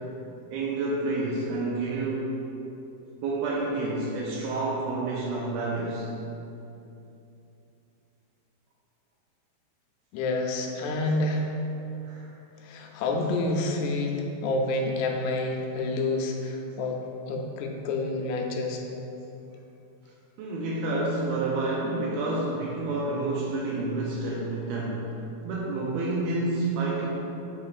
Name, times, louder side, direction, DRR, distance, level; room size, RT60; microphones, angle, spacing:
voice 1, 0.5-2.4 3.2-6.1 12.0-12.3 20.4-25.0 25.4-27.1, right 2 dB, 80° right, -4 dB, 2.3 m, -29 dB
voice 2, 10.1-11.5 12.6-18.8, left 2 dB, 85° left, 2 dB, 2.6 m, -28 dB
7.8 x 5.0 x 2.4 m, 2.8 s
omnidirectional pair, 4.8 m